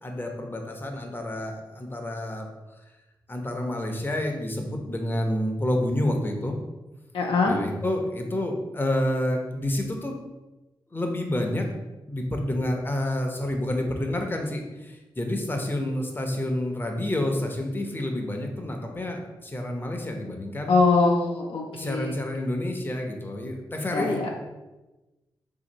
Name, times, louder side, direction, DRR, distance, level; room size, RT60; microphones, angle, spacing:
voice 1, 0.0-2.5 3.3-6.6 7.4-10.2 10.9-11.6 12.1-20.7 21.7-24.3, left 1 dB, 20° left, 2 dB, 0.7 m, -29 dB
voice 2, 7.1-7.6 20.7-22.1 23.9-24.3, left 3 dB, 70° left, 0 dB, 0.6 m, -23 dB
2.8 x 2.7 x 3.9 m, 1.1 s
supercardioid pair, 45°, 9 cm